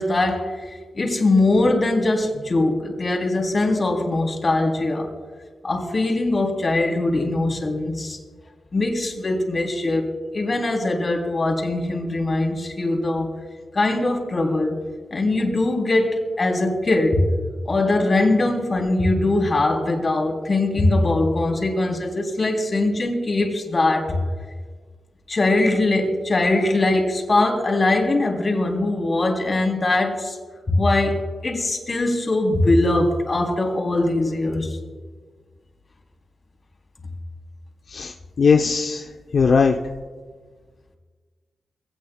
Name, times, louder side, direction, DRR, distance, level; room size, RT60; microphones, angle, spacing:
voice 1, 0.0-5.1 5.6-8.2 8.7-13.3 13.7-14.8 15.1-17.2 17.7-24.2 25.3-30.4 30.7-34.8, left 2 dB, 45° left, 2 dB, 3.2 m, -21 dB
voice 2, 37.9-39.0 39.3-39.7, left 5 dB, 70° left, 3 dB, 0.7 m, -18 dB
22.5 x 17.0 x 2.3 m, 1.5 s
cardioid pair, 60°, 0 cm